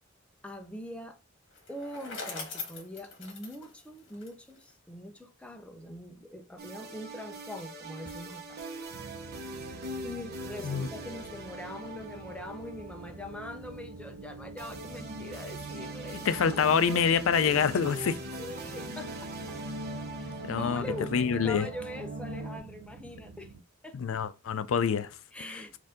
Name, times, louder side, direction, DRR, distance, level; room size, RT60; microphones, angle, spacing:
voice 1, 0.4-1.2 1.7-8.6 10.0-17.4 18.4-19.6 20.2-23.5 23.8-24.2 25.3-25.8, left 1 dB, 5° left, 0.5 m, -43 dB
Bicycle, 1.5-4.7, left 4 dB, 65° left, 1.2 m, -42 dB
sound 1, 6.6-22.6, right 1 dB, 50° right, 0.8 m, -41 dB
sound 2, 8.9-23.6, right 4 dB, 70° right, 0.4 m, -48 dB
voice 2, 16.3-18.2 20.4-20.8 21.1-21.7 23.9-25.1, left 6 dB, 80° left, 0.4 m, -26 dB
4.4 x 2.6 x 3.7 m
head